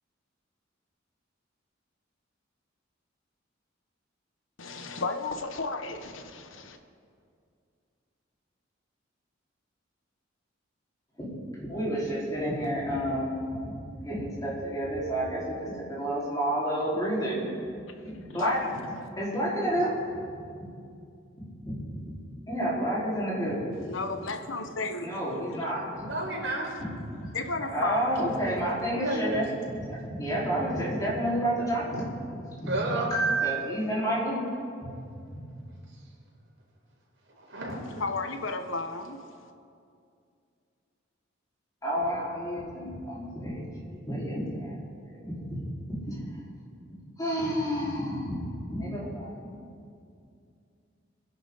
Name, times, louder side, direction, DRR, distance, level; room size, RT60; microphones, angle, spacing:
voice 1, 4.6-6.8 18.2-18.7 23.8-25.1 27.3-28.3 38.0-39.5, left 3 dB, 90° left, 7 dB, 1.1 m, -33 dB
voice 2, 11.6-13.4 13.6-17.5 18.0-18.6 19.2-20.2 20.5-20.6 21.4-21.8 22.1-22.2 22.5-23.6 25.0-26.1 26.8-26.9 27.2-27.3 27.7-29.4 29.8-34.4 34.8-34.9 35.3-35.4 41.8-43.6 43.9-44.7 45.1-45.6 45.9-46.2 47.2-48.4 48.7-49.6, right 1 dB, 20° left, -7 dB, 4.6 m, -30 dB
voice 3, 25.9-26.8 28.9-29.4 32.7-33.2 37.4-37.7, right 2 dB, 85° right, -3 dB, 4.6 m, -31 dB
27.0 x 11.0 x 4.1 m, 2.4 s
head